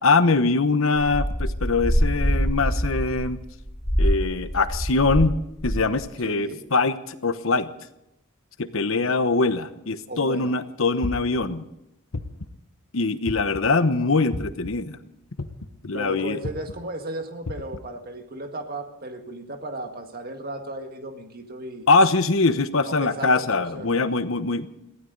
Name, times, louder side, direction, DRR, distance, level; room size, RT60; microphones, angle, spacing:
voice 1, 0.0-3.4 4.0-5.4 5.6-7.7 8.6-11.7 12.9-15.0 15.8-16.4 21.9-24.7, left 3 dB, 65° left, 11 dB, 1.0 m, -22 dB
sound 1, 1.1-5.3 5.6-6.0, equal, 45° left, 4.5 m, -24 dB
voice 2, 6.2-6.6 10.1-10.5 15.9-21.9 22.8-24.0, right 1 dB, 45° right, 5 dB, 1.8 m, -35 dB
sound 2, 11.0-11.5 12.1-12.6 13.3-13.7 14.3-14.7 15.4-15.8 16.4-16.7 17.5-17.8, left 2 dB, 85° left, 1.2 m, -32 dB
22.5 x 16.0 x 4.0 m, 0.85 s
head